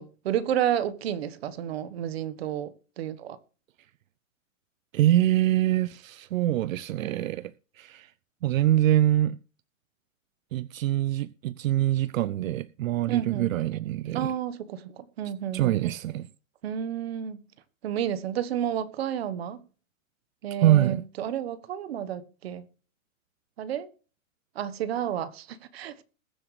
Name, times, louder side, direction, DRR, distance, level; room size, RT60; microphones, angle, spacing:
voice 1, 0.0-2.7 3.0-3.4 13.1-13.5 14.1-15.8 16.6-17.4 17.8-19.6 20.4-22.7 23.6-23.9 24.5-26.0, right 10 dB, 50° right, 1.3 m, -31 dB
voice 2, 4.9-8.1 8.4-9.4 10.5-14.3 15.5-16.3 20.6-21.0, right 13 dB, 75° right, 0.6 m, -24 dB
21.0 x 7.8 x 3.2 m
supercardioid pair, 175°, 40 cm